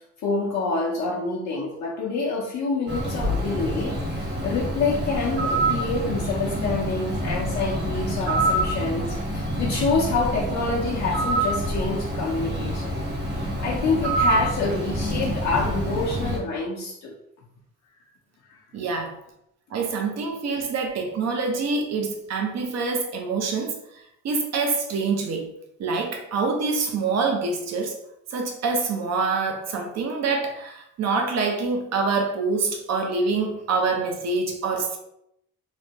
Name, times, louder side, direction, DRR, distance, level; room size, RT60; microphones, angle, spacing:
voice 1, 0.2-12.9 13.3-17.1, left 3 dB, 65° left, -3 dB, 0.7 m, -27 dB
Bird, 2.9-16.4, right 1 dB, 35° right, 1.1 m, -27 dB
voice 2, 18.7-19.2 19.7-23.8 24.2-25.5 25.8-28.0 28.3-35.0, right 4 dB, 60° right, 3 dB, 0.7 m, -26 dB
3.1 x 2.1 x 2.8 m, 0.77 s
cardioid pair, 90°, 30 cm